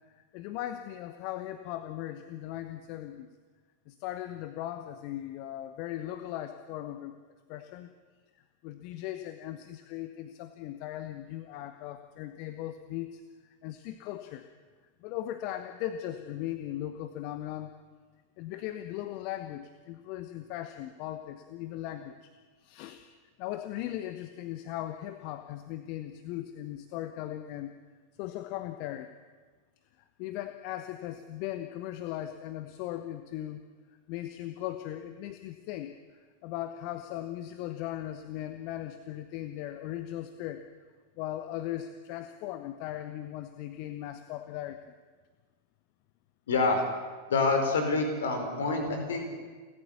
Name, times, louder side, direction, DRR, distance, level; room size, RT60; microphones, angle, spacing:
voice 1, 0.1-3.3 3.9-7.2 7.5-7.9 8.6-13.2 13.6-14.5 15.0-17.7 18.4-22.3 22.6-23.0 23.4-27.8 28.2-29.1 30.2-33.6 34.1-36.0 36.4-40.6 41.2-44.8, left 13 dB, 45° left, 9 dB, 1.1 m, -38 dB
voice 2, 46.5-46.8 47.3-49.3, left 3 dB, 65° left, 5 dB, 4.6 m, -27 dB
30.0 x 13.5 x 7.1 m, 1.5 s
figure-of-eight pair, 90°, 0 cm